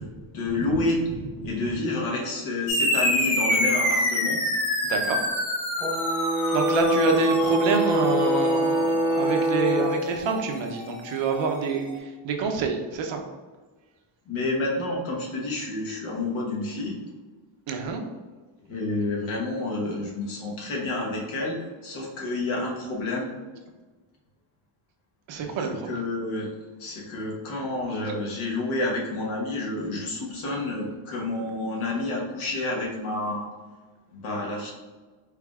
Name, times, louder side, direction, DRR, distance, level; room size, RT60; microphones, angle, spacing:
voice 1, 0.3-1.0 1.4-4.4 14.3-16.9 18.7-23.3 25.8-26.5 26.8-33.5 34.1-34.7, left 2 dB, 75° left, -2 dB, 1.2 m, -29 dB
sound 1, 2.7-11.6, left 1 dB, 35° left, 1.2 m, -28 dB
voice 2, 4.8-5.2 6.5-13.2 17.7-18.0 25.3-26.0, right 5 dB, 65° right, 3 dB, 0.7 m, -27 dB
Brass instrument, 5.8-10.0, right 1 dB, ahead, 0.8 m, -24 dB
4.8 x 3.2 x 2.3 m, 1.3 s
cardioid pair, 120°, 50 cm